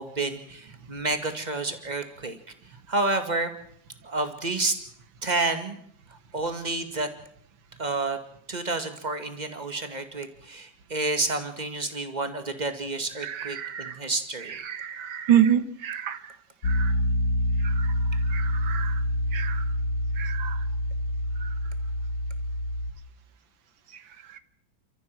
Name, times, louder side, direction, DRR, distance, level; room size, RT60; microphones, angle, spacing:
voice 1, 0.0-2.4 2.9-3.5 4.0-4.7 5.2-5.8 6.1-7.1 7.8-8.2 8.5-14.6, right 2 dB, 20° right, 7 dB, 2.2 m, -29 dB
voice 2, 13.2-13.9 14.7-16.2 16.7-16.9 17.6-17.9 18.3-19.0 19.3-19.6 20.2-20.6, right 10 dB, 90° right, 12 dB, 2.1 m, -27 dB
Piano, 16.6-22.9, left 1 dB, 85° left, 2.3 m, -26 dB
29.5 x 14.0 x 7.6 m, 0.67 s
omnidirectional pair, 2.0 m